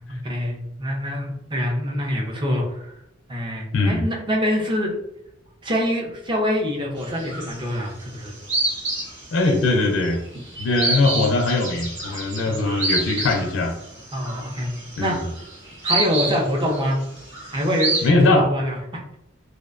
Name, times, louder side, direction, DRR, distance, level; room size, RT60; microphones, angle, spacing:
voice 1, 0.0-2.9 3.3-4.9 5.6-8.3 12.5-12.6 14.1-15.2 15.8-17.0 17.5-18.8, equal, 25° right, 0 dB, 0.5 m, -25 dB
voice 2, 3.7-4.1 9.3-10.2 10.6-13.8 15.0-15.3 18.0-18.5, left 2 dB, 80° left, 2 dB, 0.4 m, -21 dB
sound 1, 7.0-7.9 8.1-18.1, right 2 dB, 70° right, 0.8 m, -28 dB
2.5 x 2.1 x 2.4 m, 0.81 s
head